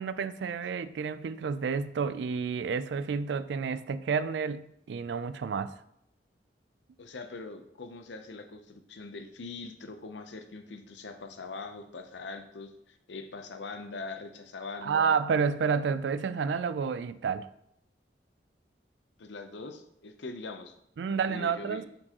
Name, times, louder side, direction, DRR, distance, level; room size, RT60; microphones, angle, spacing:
voice 1, 0.0-5.8 14.8-17.5 21.0-21.8, right 6 dB, 75° right, 14 dB, 0.3 m, -30 dB
voice 2, 7.0-15.1 19.2-20.7 21.1-21.9, left 3 dB, 85° left, 8 dB, 0.7 m, -42 dB
8.5 x 4.5 x 2.9 m, 0.76 s
head